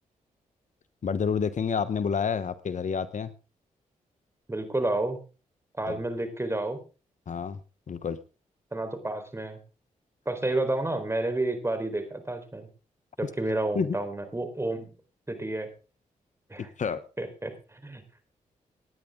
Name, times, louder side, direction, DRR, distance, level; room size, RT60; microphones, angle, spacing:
voice 1, 1.0-3.3 5.9-6.0 7.3-7.6 7.9-8.2 13.7-14.0 16.8-17.0, left 6 dB, 55° left, 14 dB, 1.0 m, -28 dB
voice 2, 4.5-5.2 5.8-6.8 8.7-9.6 10.3-12.7 13.2-14.9 15.3-15.7 16.5-16.7 17.2-18.0, right 2 dB, 20° right, 8 dB, 4.1 m, -30 dB
18.5 x 10.0 x 3.7 m, 0.33 s
cardioid pair, 60°, 15 cm